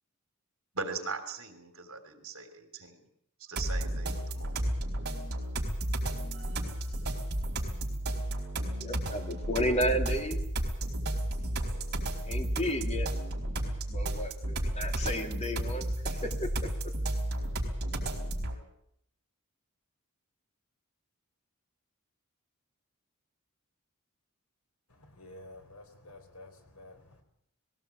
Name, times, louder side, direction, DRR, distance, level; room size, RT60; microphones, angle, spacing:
voice 1, 0.7-2.9 3.5-4.6, right 4 dB, 70° right, 3.2 m, -39 dB
sound 1, 3.6-18.6, right 1 dB, 50° right, 4.2 m, -32 dB
voice 2, 8.8-10.4 12.0-13.1 13.9-16.7, equal, 30° left, 2.7 m, -33 dB
voice 3, 24.9-27.2, left 2 dB, 85° left, 3.9 m, -51 dB
19.5 x 17.5 x 8.4 m
head